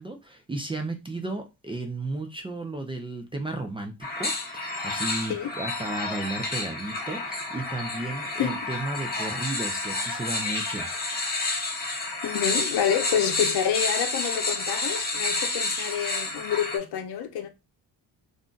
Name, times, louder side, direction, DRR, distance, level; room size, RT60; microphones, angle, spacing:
voice 1, 0.0-10.9, right 2 dB, 15° right, 0.4 m, -34 dB
sound 1, 4.0-16.8, left 3 dB, 25° left, 0.9 m, -30 dB
voice 2, 12.2-17.5, left 9 dB, 70° left, 0.7 m, -28 dB
2.5 x 2.2 x 3.7 m
cardioid pair, 120°, 40 cm